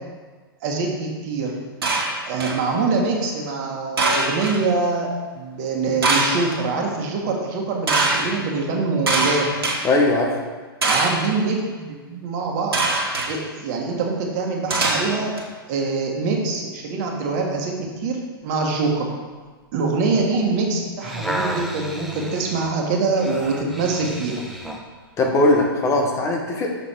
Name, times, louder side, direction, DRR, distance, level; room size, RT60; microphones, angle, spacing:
voice 1, 0.6-1.5 2.2-5.1 5.3-9.5 10.8-12.8 13.3-15.3 15.7-18.2 18.4-19.1 19.7-24.4, right 4 dB, 45° right, 0 dB, 1.6 m, -24 dB
sound 1, 1.8-2.6 4.0-4.6 6.0-6.6 7.9-8.2 9.1-9.8 10.8-11.3 12.7-13.3 14.7-15.4, right 2 dB, 75° right, 1.6 m, -22 dB
voice 2, 9.8-10.4 25.2-26.7, left 2 dB, 25° left, 1 dB, 1.1 m, -19 dB
sound 2, 20.8-24.9 25.5-25.6, right 1 dB, ahead, 0.8 m, -32 dB
6.8 x 6.5 x 4.5 m, 1.4 s
hypercardioid pair, 115°, 13 cm